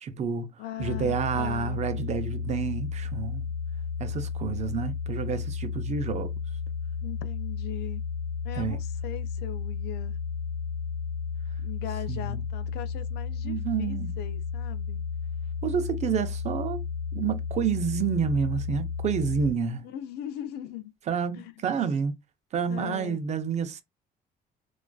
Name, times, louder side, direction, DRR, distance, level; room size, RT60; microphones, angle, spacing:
voice 1, 0.0-0.5 0.8-3.5 4.0-6.3 8.6-8.8 12.1-12.4 13.4-14.1 15.6-16.8 17.1-19.8 21.1-22.1 22.5-23.8, right 6 dB, 45° right, 0.5 m, -29 dB
voice 2, 0.6-1.8 7.0-8.0 8.4-10.2 11.6-15.1 19.8-20.9 21.3-21.7 22.7-23.2, left 11 dB, 75° left, 0.4 m, -40 dB
sound 1, 0.8-19.5, left 6 dB, 30° left, 1.6 m, -33 dB
2.3 x 2.3 x 2.2 m
cardioid pair, 110°, 17 cm